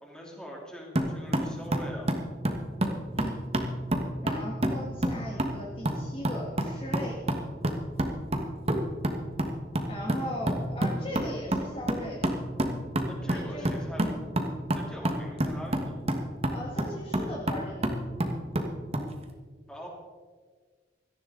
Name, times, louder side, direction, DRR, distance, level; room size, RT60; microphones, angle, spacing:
voice 1, 0.0-2.1 13.1-14.1 14.7-16.0 19.7-19.9, equal, 5° left, -2 dB, 3.2 m, -42 dB
sound 1, 1.0-19.1, right 1 dB, 35° right, 1.4 m, -30 dB
voice 2, 4.2-7.2 9.9-12.3 13.2-13.7 16.5-17.9, left 1 dB, 30° left, -2 dB, 1.9 m, -38 dB
17.0 x 14.0 x 3.9 m, 1.5 s
head